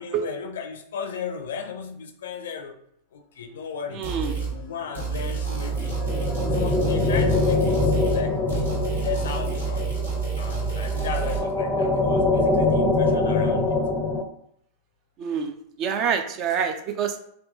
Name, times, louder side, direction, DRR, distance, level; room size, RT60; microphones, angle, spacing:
voice 1, 0.0-2.8 3.1-4.1 4.4-6.0 6.5-10.0 10.4-13.8, left 6 dB, 60° left, 7 dB, 0.5 m, -35 dB
voice 2, 3.9-4.3 15.2-15.5 15.8-17.2, right 7 dB, 35° right, 6 dB, 0.5 m, -26 dB
sound 1, 4.0-4.5 4.9-8.2 8.5-11.4, right 6 dB, 80° right, 1.6 m, -28 dB
sound 2, 5.4-14.2, left 3 dB, 15° left, 0.5 m, -24 dB
3.7 x 2.8 x 3.5 m, 0.71 s
figure-of-eight pair, 90°, 0 cm